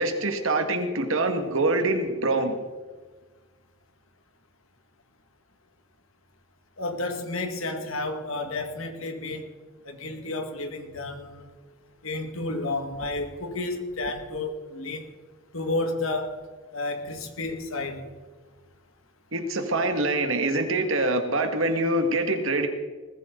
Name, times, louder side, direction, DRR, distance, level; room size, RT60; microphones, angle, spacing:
voice 1, 0.0-2.6 19.3-22.7, right 2 dB, 70° right, 1.9 m, -25 dB
voice 2, 6.8-9.5 9.9-11.5 12.0-15.1 15.5-16.4 16.7-18.1, left 2 dB, 75° left, 2.0 m, -31 dB
20.5 x 15.0 x 3.9 m
head